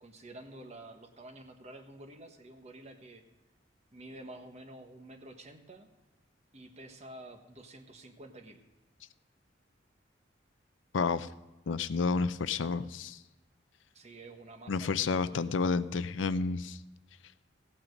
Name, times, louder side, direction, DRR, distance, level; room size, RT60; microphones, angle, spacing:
voice 1, 0.0-3.2 3.9-5.9 6.5-8.6 13.9-15.5, right 1 dB, 35° right, 5 dB, 1.2 m, -49 dB
voice 2, 10.9-11.3 11.7-13.2 14.7-16.8, left 4 dB, 85° left, 14 dB, 0.5 m, -30 dB
15.5 x 8.9 x 5.2 m, 1.1 s
head